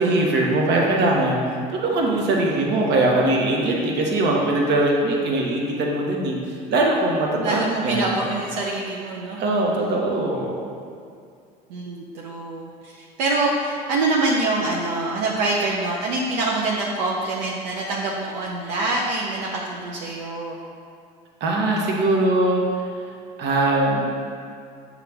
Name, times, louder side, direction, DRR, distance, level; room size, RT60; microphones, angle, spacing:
voice 1, 0.0-1.4 1.7-6.4 6.7-8.1 9.4-10.5 21.4-22.6 23.4-24.0, right 2 dB, 55° right, -1 dB, 0.9 m, -21 dB
voice 2, 7.3-9.4 9.8-10.0 11.7-20.6, right 2 dB, 80° right, -3 dB, 0.5 m, -25 dB
6.7 x 2.4 x 3.3 m, 2.3 s
hypercardioid pair, 75°, 21 cm